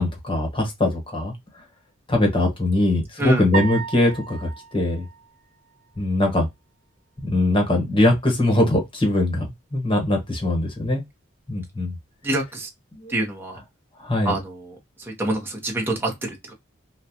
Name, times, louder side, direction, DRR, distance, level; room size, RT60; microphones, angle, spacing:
voice 1, 0.0-1.3 2.1-5.1 6.0-6.5 7.2-11.0 11.5-12.0 12.9-13.1 14.0-14.3, left 1 dB, 25° left, 1.2 m, -22 dB
sound 1, 3.5-6.0, right 6 dB, 35° right, 1.2 m, -33 dB
voice 2, 12.2-12.7 13.1-13.6 14.2-16.5, right 1 dB, 10° right, 1.0 m, -26 dB
3.7 x 2.4 x 2.8 m
head